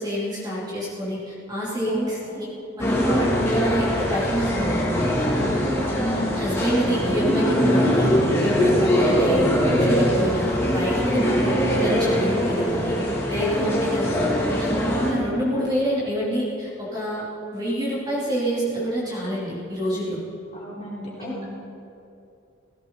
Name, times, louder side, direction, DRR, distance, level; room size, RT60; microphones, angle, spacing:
voice 1, 0.0-2.5 2.8-5.2 6.3-8.1 8.4-13.0 13.3-14.3 14.6-17.3 17.5-20.2 21.2-21.4, equal, 20° right, -7 dB, 3.1 m, -27 dB
voice 2, 1.9-2.4 5.8-6.3 14.3-14.6 20.5-21.4, equal, 35° left, -6 dB, 4.0 m, -36 dB
sound 1, 2.8-15.1, equal, 15° left, 2.2 m, -22 dB
16.5 x 16.5 x 3.9 m, 2.7 s
head